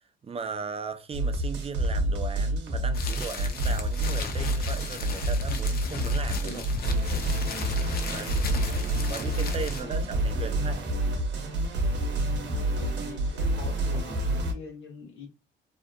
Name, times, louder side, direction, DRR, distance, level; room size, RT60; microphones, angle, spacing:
voice 1, 0.2-6.6 8.1-8.5 9.1-10.9 13.9-14.1, right 5 dB, 30° right, 0.4 m, -37 dB
sound 1, 1.1-14.5, right 1 dB, 60° right, 0.8 m, -28 dB
sound 2, 2.9-9.8, left 4 dB, 50° left, 0.5 m, -36 dB
voice 2, 8.5-8.8 9.5-10.2 12.7-15.3, left 4 dB, 90° left, 0.9 m, -44 dB
2.7 x 2.4 x 2.2 m
cardioid pair, 90°, 20 cm